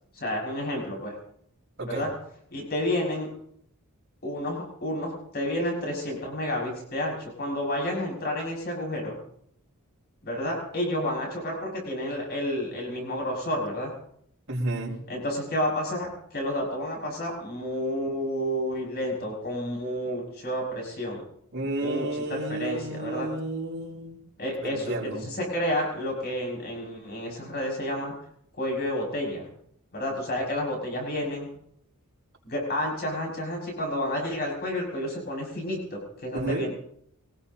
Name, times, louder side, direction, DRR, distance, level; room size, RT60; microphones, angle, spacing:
voice 1, 0.1-1.2 1.8-2.1 2.5-3.3 4.2-9.2 10.2-13.9 15.1-21.2 21.8-23.3 24.4-28.2 28.5-29.5 29.9-31.5 32.4-36.7, left 1 dB, 45° left, -1 dB, 6.3 m, -30 dB
voice 2, 14.5-14.9 21.5-24.2 24.6-25.2 36.4-36.6, right 2 dB, 60° right, -4 dB, 4.9 m, -31 dB
23.5 x 19.5 x 2.9 m, 0.69 s
head